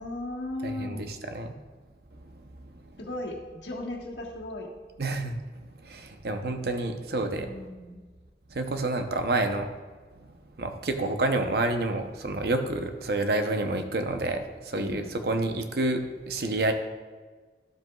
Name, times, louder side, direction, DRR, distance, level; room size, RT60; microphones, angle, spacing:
voice 1, 0.0-1.1 3.0-4.7 7.4-8.0 14.7-15.1, left 1 dB, 90° left, -1 dB, 1.5 m, -37 dB
voice 2, 0.6-1.5 2.2-2.8 5.0-7.5 8.5-9.7 10.2-10.3 10.6-16.7, right 2 dB, 65° right, 6 dB, 0.7 m, -29 dB
12.0 x 7.8 x 2.3 m, 1.4 s
head